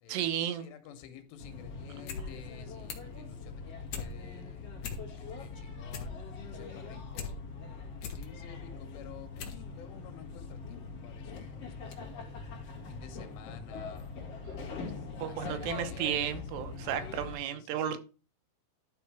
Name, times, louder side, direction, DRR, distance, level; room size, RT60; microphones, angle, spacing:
voice 1, 0.1-0.7 15.2-18.0, right 10 dB, 85° right, 3.1 m, -33 dB
voice 2, 0.6-3.6 4.0-4.7 5.2-6.1 6.5-7.4 8.1-12.4 12.9-14.1 14.6-16.4 16.8-18.0, left 8 dB, 85° left, 3.5 m, -52 dB
sound 1, 1.4-17.4, left 4 dB, 45° left, 2.5 m, -43 dB
sound 2, 1.9-2.3 2.5-3.2 3.5-4.1 4.5-4.6 4.8-5.4 5.7-7.3 7.7-8.3 8.8-8.9 9.4-9.6 9.9-10.0, left 6 dB, 60° left, 2.3 m, -40 dB
12.0 x 4.2 x 4.8 m
omnidirectional pair, 4.8 m